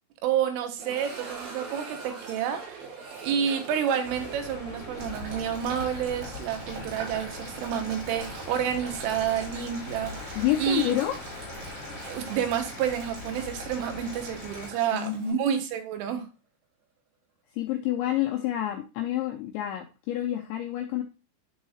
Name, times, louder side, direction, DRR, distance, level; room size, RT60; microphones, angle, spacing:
voice 1, 0.2-2.8 3.2-10.9 12.1-16.3, right 9 dB, 85° right, 3.3 m, -29 dB
sound 1, 0.8-9.7 10.0-10.1 10.7-10.8 13.4-13.5, right 4 dB, 50° right, 4.6 m, -44 dB
sound 2, 4.0-14.7, left 3 dB, 55° left, 2.2 m, -41 dB
Boiling, 5.0-15.3, right 3 dB, 65° right, 4.5 m, -43 dB
voice 2, 10.4-11.1 14.9-15.4 17.6-21.0, left 13 dB, 85° left, 2.5 m, -28 dB
11.0 x 4.2 x 2.4 m
omnidirectional pair, 5.9 m